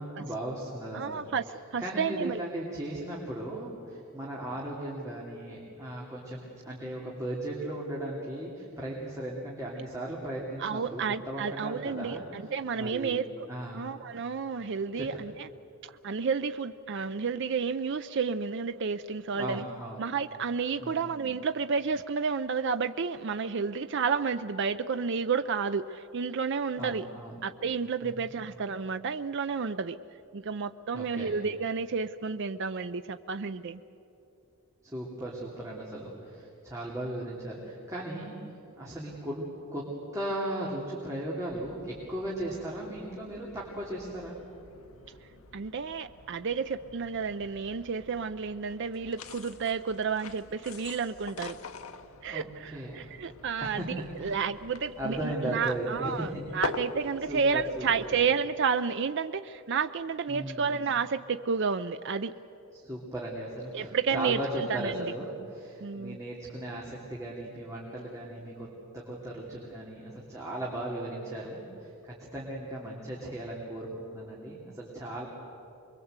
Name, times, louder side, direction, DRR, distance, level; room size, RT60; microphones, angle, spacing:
voice 1, 0.0-1.2 1.8-13.9 15.0-15.2 19.3-20.0 20.8-21.1 26.7-27.4 28.0-28.4 30.9-31.3 34.8-38.4 38.8-39.8 40.1-44.4 52.3-53.1 53.6-53.9 54.2-54.3 55.0-56.4 57.3-58.1 60.3-60.8 62.7-68.7 68.9-75.3, right 1 dB, 15° right, -5 dB, 3.0 m, -37 dB
voice 2, 0.9-1.4 1.7-2.4 10.6-13.2 13.7-15.5 15.8-19.6 20.0-27.1 27.4-30.0 30.3-33.8 45.5-51.6 52.2-62.3 63.7-65.0 65.8-66.2, right 5 dB, 55° right, 10 dB, 0.5 m, -31 dB
Bassin Vauban jour pont objets, 41.5-58.3, left 4 dB, 75° left, 1.0 m, -45 dB
25.5 x 22.0 x 8.1 m, 2.9 s
head